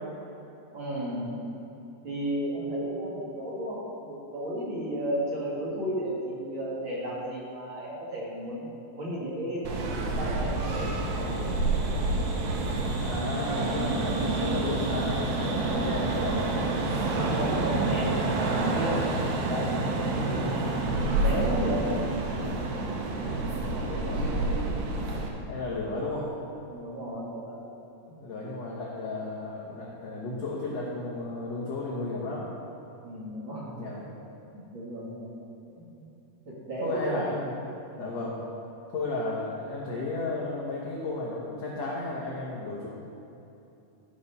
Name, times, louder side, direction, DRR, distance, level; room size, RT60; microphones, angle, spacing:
voice 1, 0.7-1.5 2.0-11.6 17.0-20.7 21.2-21.9 26.7-27.6 33.0-33.7 34.5-35.3 35.7-35.9 36.4-37.2 38.0-38.1, right 1 dB, 50° right, -6 dB, 1.5 m, -34 dB
sound 1, 9.7-25.3, right 2 dB, 75° right, 2.7 m, -28 dB
voice 2, 13.0-16.4 23.5-24.7 25.5-26.3 28.2-32.5 33.8-34.0 36.8-37.5 38.0-38.4 38.9-42.9, left 2 dB, 85° left, -5 dB, 1.4 m, -34 dB
14.0 x 4.9 x 5.5 m, 2.8 s
omnidirectional pair, 4.7 m